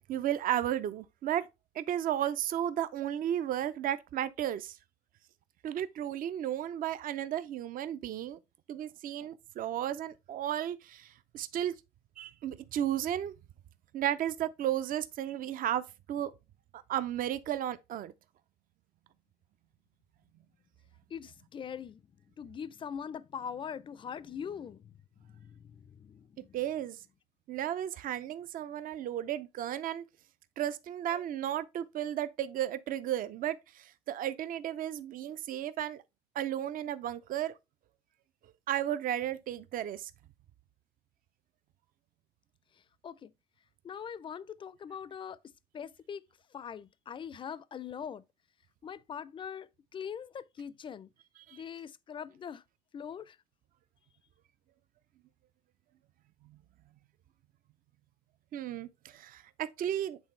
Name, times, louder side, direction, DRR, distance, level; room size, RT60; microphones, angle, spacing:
voice 1, 0.1-1.5 1.7-4.8 5.6-8.4 8.7-11.7 12.2-13.3 13.9-16.3 16.9-18.1 26.4-27.0 27.5-30.0 30.6-36.0 36.4-37.5 38.7-40.1 51.5-51.6 56.5-56.6 58.5-60.2, right 11 dB, 55° right, 0.5 m, -34 dB
voice 2, 21.1-22.0 22.4-26.6 43.0-43.3 43.8-45.4 45.7-46.2 46.5-48.2 48.8-51.1 51.5-52.6 52.9-53.4, left 7 dB, 30° left, 0.4 m, -42 dB
8.2 x 3.6 x 3.2 m
cardioid pair, 110°, 17 cm